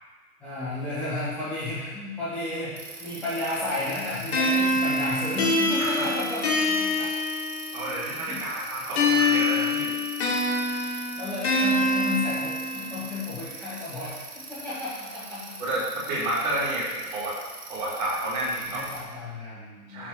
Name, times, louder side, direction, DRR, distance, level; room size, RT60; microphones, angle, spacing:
voice 1, 0.4-7.2 8.3-8.4 11.2-15.6 18.7-20.1, left 2 dB, 5° left, -11 dB, 1.7 m, -33 dB
Bicycle, 2.8-19.0, right 3 dB, 80° right, 3.4 m, -42 dB
sound 1, 4.3-7.9 9.0-13.0, left 2 dB, 40° left, 2.1 m, -25 dB
voice 2, 7.7-9.9 15.6-17.4 17.7-18.8 19.9-20.1, right 1 dB, 25° right, -9 dB, 3.5 m, -30 dB
12.5 x 4.5 x 5.9 m, 1.3 s
hypercardioid pair, 175°, 48 cm